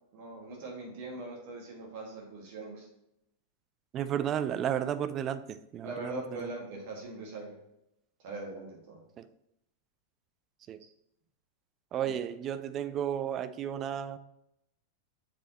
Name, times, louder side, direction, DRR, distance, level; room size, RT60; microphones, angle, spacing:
voice 1, 0.1-2.9 5.8-7.6 8.2-9.0, right 2 dB, 50° right, 0 dB, 1.9 m, -41 dB
voice 2, 3.9-5.4 5.7-6.5 9.2-9.3 10.7-10.8 11.9-14.2, right 9 dB, 30° right, 12 dB, 0.4 m, -33 dB
7.0 x 4.8 x 2.9 m, 0.82 s
figure-of-eight pair, 90°, 0 cm